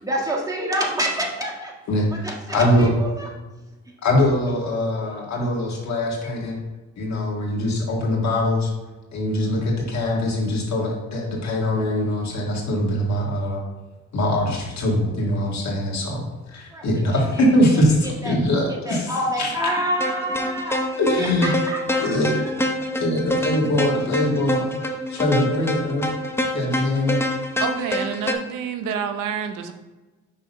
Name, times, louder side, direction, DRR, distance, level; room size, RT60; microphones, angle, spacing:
voice 1, 0.0-1.7 2.1-3.3 16.7-17.2 18.2-18.4 18.7-20.9 21.2-22.7, right 1 dB, 10° right, -2 dB, 1.6 m, -27 dB
voice 2, 1.9-2.9 4.0-6.6 7.0-8.7 9.1-13.6 14.1-19.5 21.0-21.5 21.9-22.5 22.9-26.1 26.5-27.2, left 1 dB, 65° left, -1 dB, 2.0 m, -22 dB
sound 1, 20.0-28.3, left 1 dB, 10° left, 0.6 m, -26 dB
voice 3, 27.6-29.7, right 7 dB, 90° right, 8 dB, 0.7 m, -28 dB
5.7 x 3.7 x 5.3 m, 1.2 s
cardioid pair, 90°, 30 cm